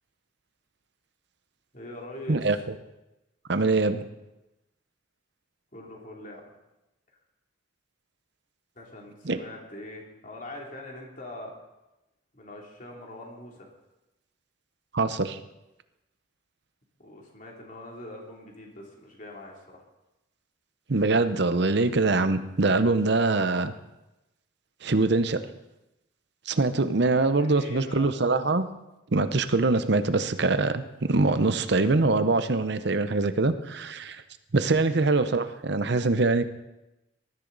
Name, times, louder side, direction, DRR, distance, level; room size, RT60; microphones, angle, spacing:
voice 1, 1.7-2.6 5.7-6.5 8.7-11.5 12.3-13.7 17.0-19.9 27.4-28.1 34.8-35.2, left 1 dB, 45° left, -1 dB, 2.9 m, -43 dB
voice 2, 3.5-4.0 9.2-9.4 14.9-15.4 20.9-23.7 24.8-25.5 26.5-28.7 29.1-34.2 34.5-36.4, right 3 dB, 60° right, 11 dB, 0.8 m, -23 dB
19.5 x 13.5 x 4.0 m, 0.96 s
head